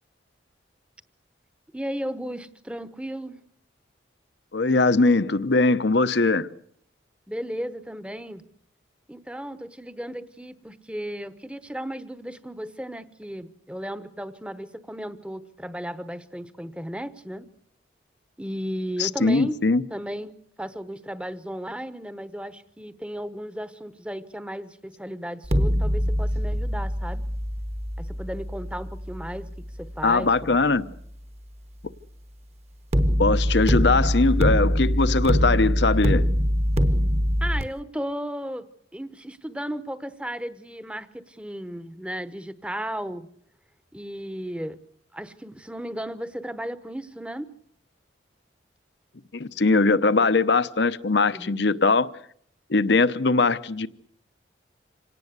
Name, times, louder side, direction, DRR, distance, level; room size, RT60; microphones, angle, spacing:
voice 1, 1.7-3.4 7.3-8.4 9.1-17.5 18.4-19.6 19.9-27.2 28.0-30.6 30.9-31.0 37.4-38.7 38.9-43.3 43.9-44.8 45.1-47.5 51.3-51.6, equal, 5° right, 0.9 m, -35 dB
voice 2, 4.5-6.5 19.0-19.8 30.0-30.8 33.2-36.3 49.3-52.1 52.7-53.9, left 3 dB, 70° left, 0.9 m, -21 dB
sound 1, 25.4-30.5 32.9-37.6, equal, 35° right, 1.1 m, -24 dB
26.0 x 18.0 x 8.2 m
head